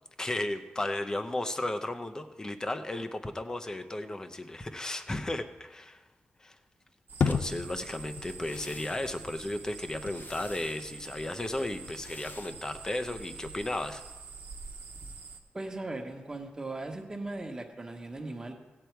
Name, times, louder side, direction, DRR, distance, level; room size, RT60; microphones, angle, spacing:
voice 1, 0.2-6.0 6.4-6.6 7.3-14.0, left 1 dB, 20° left, 8 dB, 0.7 m, -34 dB
sound 1, 7.1-15.4, right 5 dB, 55° right, 1.2 m, -46 dB
sound 2, 7.2-13.4, left 5 dB, 60° left, 0.6 m, -37 dB
voice 2, 15.5-18.5, right 2 dB, 20° right, 3 dB, 1.3 m, -38 dB
16.5 x 8.7 x 4.6 m, 1.2 s
wide cardioid pair, 175°, 4 cm